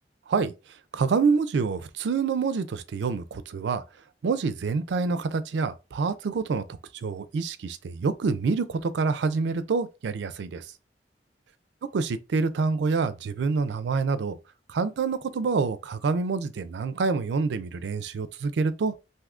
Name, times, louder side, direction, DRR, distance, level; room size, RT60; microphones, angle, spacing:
voice 1, 0.9-3.8 4.2-10.7 11.9-14.4 14.7-18.9, right 4 dB, 80° right, 0.4 m, -27 dB
2.6 x 2.4 x 3.5 m
head